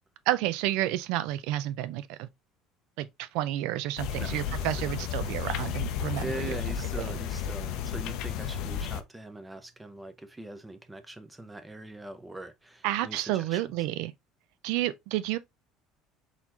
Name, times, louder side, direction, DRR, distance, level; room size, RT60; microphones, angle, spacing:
voice 1, 0.3-2.3 3.0-6.6 7.0-7.2 12.8-14.1 14.6-15.4, right 14 dB, 70° right, 0.5 m, -30 dB
sound 1, 4.0-9.0, left 8 dB, 55° left, 0.6 m, -33 dB
voice 2, 4.1-4.5 6.2-13.7, right 1 dB, 10° right, 0.6 m, -42 dB
4.1 x 4.1 x 2.9 m
cardioid pair, 170°, 0 cm